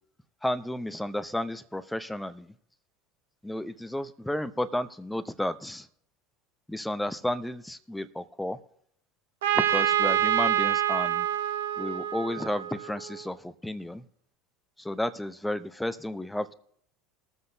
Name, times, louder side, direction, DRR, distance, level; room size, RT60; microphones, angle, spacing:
voice 1, 0.4-2.5 3.4-5.9 6.7-8.6 9.6-11.3 11.8-14.0 14.8-16.5, left 1 dB, 5° left, 12 dB, 0.8 m, -32 dB
Trumpet, 9.4-13.1, right 11 dB, 75° right, 0.8 m, -26 dB
21.5 x 7.7 x 2.8 m, 0.69 s
hypercardioid pair, 80°, 0 cm